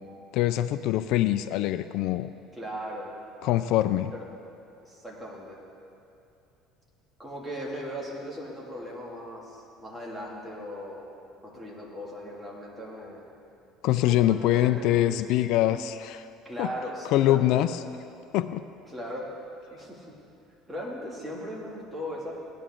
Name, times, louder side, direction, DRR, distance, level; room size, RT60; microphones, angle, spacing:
voice 1, 0.3-2.3 3.4-4.1 13.8-16.2 16.6-16.7 17.1-17.7 18.3-18.6, left 14 dB, 70° left, 12 dB, 0.3 m, -24 dB
voice 2, 2.5-3.1 4.1-4.2 4.8-5.6 7.2-11.1 11.4-13.3 14.1-15.1 16.4-17.7 18.9-19.3 19.7-20.1 20.7-22.3, equal, 10° right, -4 dB, 2.6 m, -38 dB
17.0 x 10.5 x 3.8 m, 2.7 s
cardioid pair, 125°, 0 cm